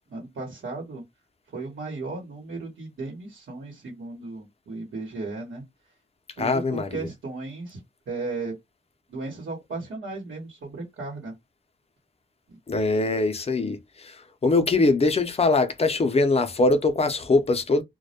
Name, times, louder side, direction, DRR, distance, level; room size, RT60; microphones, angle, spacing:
voice 1, 0.1-1.0 1.5-5.6 6.4-7.8 8.1-8.5 9.1-11.3 12.5-12.6, right 3 dB, 80° right, 1.0 m, -35 dB
voice 2, 6.4-7.1 12.7-17.8, left 3 dB, 30° left, 0.4 m, -22 dB
2.2 x 2.1 x 2.7 m
wide cardioid pair, 155°, 20 cm